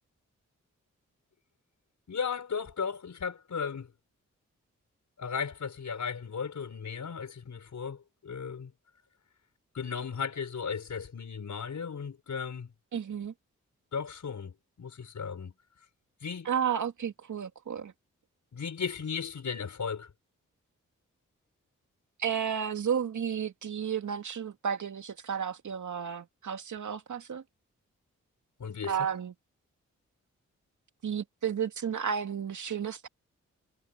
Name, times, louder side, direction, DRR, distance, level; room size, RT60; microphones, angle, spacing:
voice 1, 2.1-3.9 5.2-8.7 9.7-12.7 13.9-15.5 16.2-16.5 18.5-20.1 28.6-29.0, left 6 dB, 65° left, 5.4 m, -36 dB
voice 2, 12.9-13.3 16.4-17.9 22.2-27.4 28.9-29.3 31.0-33.1, right 8 dB, 70° right, 2.6 m, -32 dB
cardioid pair, 45°, 31 cm